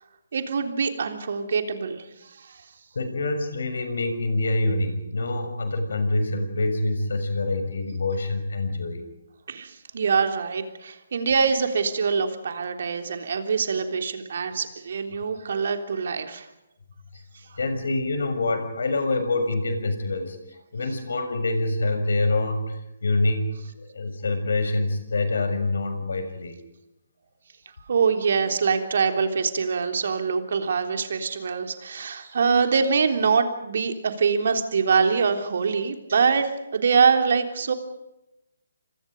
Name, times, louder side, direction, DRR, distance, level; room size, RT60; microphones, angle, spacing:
voice 1, 0.3-2.0 2.4-2.6 9.5-16.5 27.9-37.7, right 5 dB, 50° right, 5 dB, 3.4 m, -24 dB
voice 2, 2.9-9.0 17.6-20.4 20.7-26.5, left 2 dB, 60° left, 8 dB, 6.3 m, -26 dB
29.5 x 27.0 x 5.3 m, 0.91 s
figure-of-eight pair, 140°, 0 cm